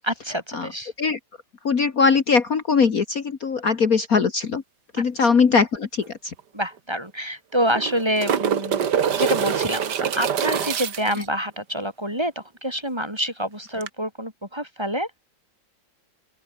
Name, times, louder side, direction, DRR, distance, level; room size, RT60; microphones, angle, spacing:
voice 1, 0.0-0.9 5.2-5.3 6.5-15.1, equal, 15° right, 5.8 m, -27 dB
voice 2, 1.6-4.6 4.9-6.3, left 5 dB, 50° left, 2.1 m, -20 dB
sound 1, 6.0-6.1 6.4-6.5 7.5-11.3 13.8-13.9, right 8 dB, 65° right, 2.0 m, -25 dB
open air
omnidirectional pair, 2.0 m